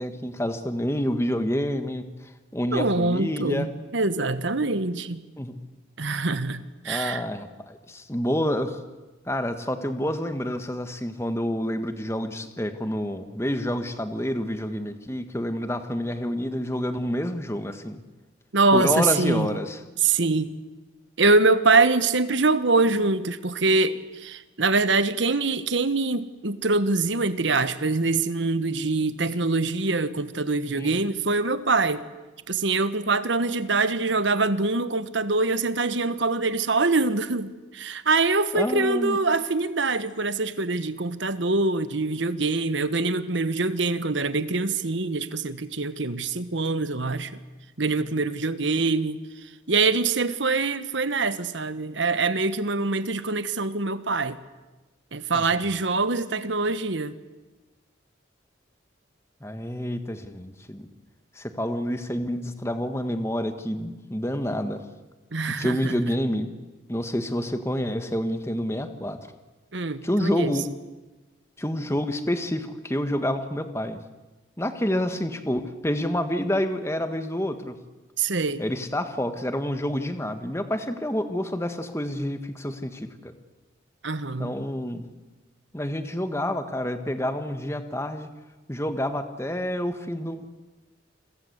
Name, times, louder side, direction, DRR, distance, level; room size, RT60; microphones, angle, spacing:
voice 1, 0.0-3.7 5.4-5.5 6.8-8.8 9.3-18.0 18.7-19.8 30.8-31.0 38.5-39.2 55.3-55.5 59.4-60.9 61.3-64.8 65.5-66.5 66.9-69.2 70.0-70.7 71.6-74.0 74.6-77.8 78.6-83.3 84.4-85.0 85.7-88.3 88.7-90.5, equal, 15° left, 1.6 m, -28 dB
voice 2, 2.7-5.2 6.0-7.2 18.5-19.5 20.0-20.5 21.2-32.0 32.5-47.4 47.8-49.2 49.7-54.4 55.1-57.2 65.3-66.0 69.7-70.5 78.2-78.6 84.0-84.5, right 3 dB, 75° right, 1.4 m, -24 dB
29.5 x 22.5 x 8.1 m
head